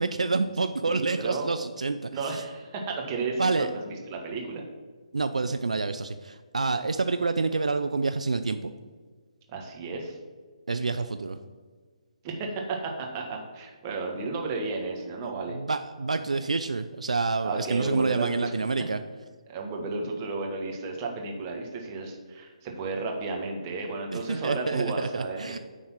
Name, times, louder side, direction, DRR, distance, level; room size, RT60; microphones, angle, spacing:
voice 1, 0.0-2.4 3.4-3.7 5.1-8.7 10.7-11.4 15.5-19.0 24.1-25.6, right 3 dB, 80° right, 10 dB, 0.4 m, -28 dB
voice 2, 0.9-1.5 2.1-4.6 9.5-10.2 12.2-15.6 17.4-18.5 19.5-25.6, right 3 dB, 30° right, 1 dB, 1.4 m, -33 dB
9.7 x 3.9 x 6.0 m, 1.5 s
figure-of-eight pair, 145°, 4 cm